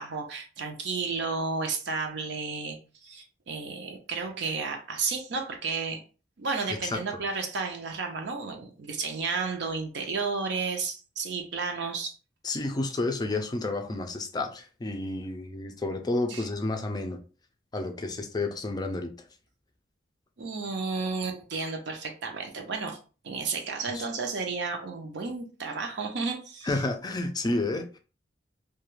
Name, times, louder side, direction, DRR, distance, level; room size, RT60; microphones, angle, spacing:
voice 1, 0.0-6.0 6.4-12.1 16.3-16.5 20.4-23.0 23.2-26.8, right 4 dB, 65° right, 0.5 m, -32 dB
voice 2, 12.4-17.2 17.7-19.1 23.9-24.0 26.6-28.0, left 2 dB, 20° left, 0.4 m, -30 dB
2.4 x 2.2 x 3.0 m
head